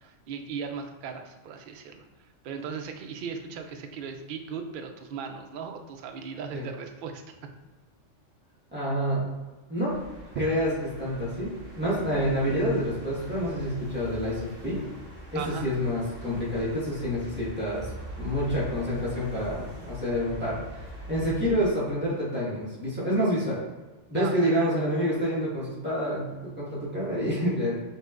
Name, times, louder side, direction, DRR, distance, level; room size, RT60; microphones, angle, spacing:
voice 1, 0.0-7.2 15.3-15.7 24.1-24.7, right 6 dB, 60° right, 5 dB, 0.5 m, -38 dB
voice 2, 8.7-9.2 9.7-9.9 10.3-10.7 11.0-14.8 15.3-17.9 18.2-23.6 24.1-27.8, equal, 10° right, -9 dB, 1.4 m, -28 dB
sound 1, 9.9-21.7, right 1 dB, 35° right, 1.2 m, -42 dB
5.5 x 2.9 x 2.4 m, 1.2 s
omnidirectional pair, 1.3 m